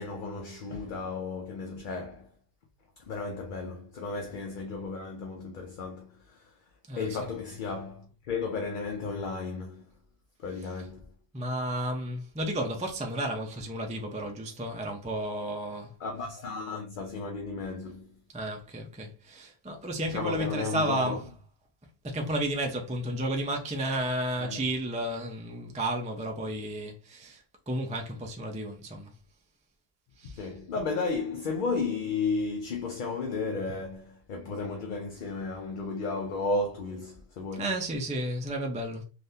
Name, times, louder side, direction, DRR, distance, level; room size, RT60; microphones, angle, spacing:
voice 1, 0.0-2.3 3.1-6.5 7.0-9.9 10.4-11.1 16.0-18.1 20.1-21.2 24.4-24.6 30.2-37.7, left 4 dB, 60° left, 0.7 m, -34 dB
voice 2, 6.9-7.2 11.3-15.9 18.3-21.2 22.0-29.1 30.2-30.4 37.5-39.0, right 1 dB, 10° right, 0.3 m, -32 dB
3.5 x 2.5 x 2.6 m
omnidirectional pair, 1.0 m